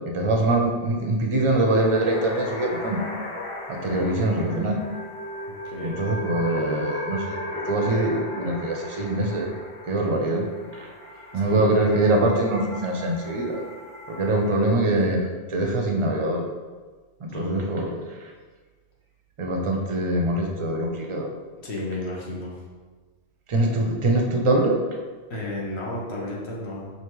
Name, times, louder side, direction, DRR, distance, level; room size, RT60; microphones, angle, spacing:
voice 1, 0.1-3.1 3.7-4.8 5.8-9.5 9.9-10.5 10.8-10.9 11.3-13.6 14.1-16.4 17.2-18.2 19.4-21.3 23.5-24.8, right 1 dB, 40° right, 1 dB, 0.5 m, -23 dB
sound 1, 1.4-14.8, left 1 dB, 45° left, 0.4 m, -37 dB
voice 2, 3.9-4.3 5.6-6.0 11.4-11.8 17.3-17.6 21.6-22.5 25.3-26.9, left 1 dB, 85° left, -4 dB, 1.2 m, -33 dB
4.9 x 2.7 x 3.0 m, 1.4 s
omnidirectional pair, 1.1 m